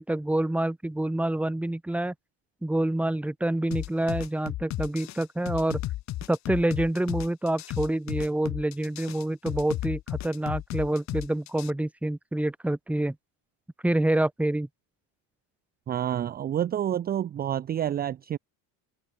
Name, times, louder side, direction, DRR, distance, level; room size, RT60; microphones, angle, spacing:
voice 1, 0.0-2.1 2.6-5.8 6.3-13.2 13.8-14.7, right 1 dB, 5° right, 1.0 m, -27 dB
sound 1, 3.7-11.7, left 15 dB, 40° left, 0.7 m, -34 dB
voice 2, 15.9-18.4, right 10 dB, 25° right, 0.5 m, -28 dB
open air
cardioid pair, 145°, 43 cm